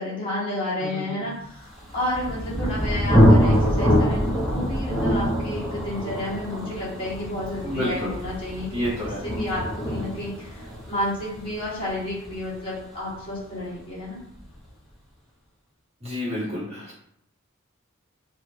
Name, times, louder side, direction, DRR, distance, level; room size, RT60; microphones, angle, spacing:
voice 1, 0.0-8.8 9.2-14.2, left 1 dB, 25° left, -8 dB, 1.3 m, -31 dB
voice 2, 0.8-1.2 7.6-8.1 8.7-9.2 16.0-17.0, equal, 30° right, -8 dB, 1.3 m, -30 dB
Thunder, 1.8-13.3, equal, ahead, 0.6 m, -24 dB
3.1 x 2.6 x 2.5 m, 0.72 s
head